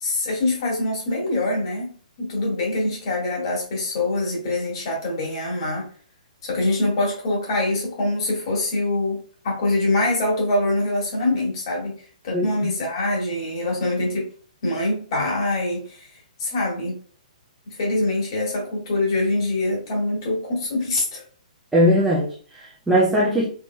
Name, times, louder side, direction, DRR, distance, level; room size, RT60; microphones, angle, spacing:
voice 1, 0.0-5.9 6.4-12.0 12.2-14.3 14.6-16.1 16.4-17.0 17.7-21.2, left 2 dB, 35° left, -2 dB, 1.7 m, -24 dB
voice 2, 12.3-12.7 21.7-23.5, equal, 5° right, -6 dB, 0.4 m, -20 dB
4.2 x 3.2 x 2.2 m, 0.44 s
hypercardioid pair, 175°, 4 cm